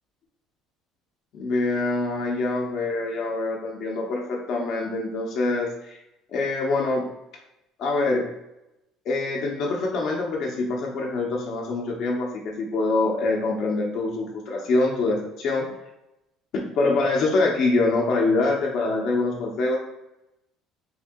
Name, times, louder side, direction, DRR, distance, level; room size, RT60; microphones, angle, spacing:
voice 1, 1.3-6.0 6.3-7.1 7.8-8.3 9.0-15.7 16.5-19.8, left 3 dB, 50° left, -2 dB, 0.6 m, -25 dB
3.5 x 2.6 x 3.5 m, 0.89 s
cardioid pair, 160°, 0 cm